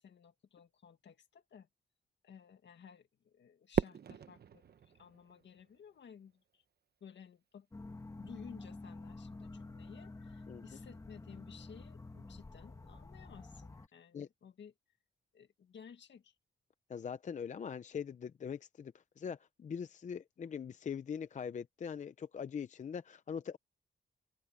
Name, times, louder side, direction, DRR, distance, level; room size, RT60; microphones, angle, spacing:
voice 1, 0.0-1.7 2.2-6.6 7.0-14.7 15.3-16.4, left 7 dB, 65° left, 1.9 m, -56 dB
Fireworks, 3.7-6.1, right 7 dB, 55° right, 1.0 m, -37 dB
sound 1, 7.7-13.9, left 3 dB, 15° left, 1.4 m, -49 dB
voice 2, 16.9-23.6, left 7 dB, 40° left, 0.5 m, -42 dB
open air
wide cardioid pair, 175°, 20 cm